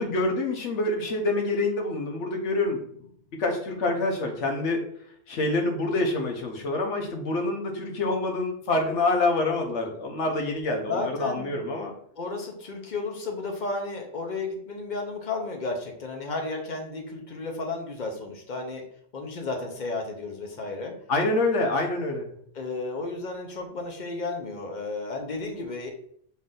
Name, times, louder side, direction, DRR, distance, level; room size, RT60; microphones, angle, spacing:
voice 1, 0.0-3.0 3.4-4.8 5.3-11.9 21.1-22.3, left 2 dB, 70° left, 2 dB, 1.1 m, -26 dB
voice 2, 10.9-11.5 12.2-18.8 19.1-20.9 22.5-25.9, left 3 dB, 45° left, 2 dB, 0.7 m, -33 dB
4.1 x 2.6 x 3.8 m, 0.64 s
omnidirectional pair, 1.3 m